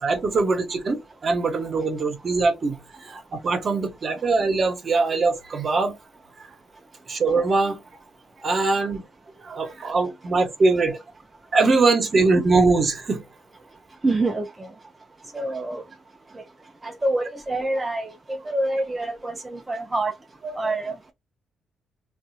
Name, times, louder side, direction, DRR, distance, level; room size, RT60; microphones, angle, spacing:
voice 1, 0.0-6.0 7.1-7.8 8.4-9.0 9.4-11.0 11.5-13.2 20.4-20.7, right 3 dB, 45° right, 1.1 m, -22 dB
voice 2, 14.0-14.7 15.3-15.8 16.8-20.1 20.6-21.1, right 2 dB, 20° right, 0.5 m, -26 dB
3.5 x 2.5 x 2.7 m
cardioid pair, 90°, 0 cm